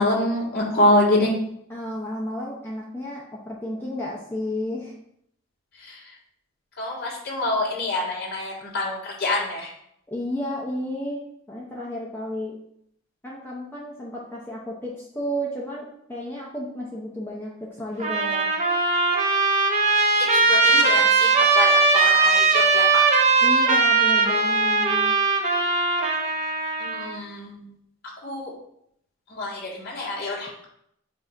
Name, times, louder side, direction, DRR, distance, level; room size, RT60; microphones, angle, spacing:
voice 1, 0.0-1.3 5.7-6.2 6.8-9.7 20.2-23.0 26.8-27.7 28.2-28.5 29.3-30.6, left 1 dB, 45° left, -5 dB, 2.0 m, -26 dB
voice 2, 1.7-4.9 10.1-11.2 11.5-12.5 13.2-18.5 23.4-25.1, equal, 10° left, -4 dB, 0.7 m, -32 dB
Trumpet, 18.0-27.1, right 4 dB, 35° right, 0.8 m, -20 dB
8.1 x 2.7 x 4.4 m, 0.72 s
head